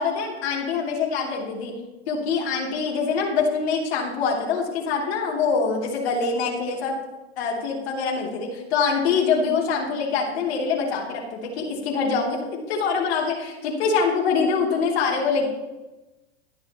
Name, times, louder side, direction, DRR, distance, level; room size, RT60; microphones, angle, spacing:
voice 1, 0.0-1.7 2.1-6.9 7.4-15.5, left 5 dB, 65° left, -2 dB, 3.2 m, -24 dB
12.5 x 10.5 x 3.1 m, 1.1 s
hypercardioid pair, 120°, 34 cm